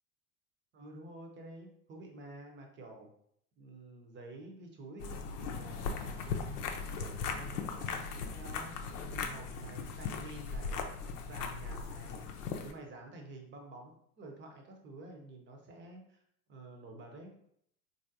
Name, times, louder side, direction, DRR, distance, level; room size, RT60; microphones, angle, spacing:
voice 1, 0.7-3.1 3.6-8.7 9.1-10.8 11.3-12.3 12.6-16.2 16.5-17.3, right 2 dB, 25° right, 2 dB, 0.7 m, -50 dB
sound 1, 5.0-12.7, left 5 dB, 80° left, 0.6 m, -38 dB
3.4 x 2.6 x 2.6 m, 0.70 s
hypercardioid pair, 90°, 45 cm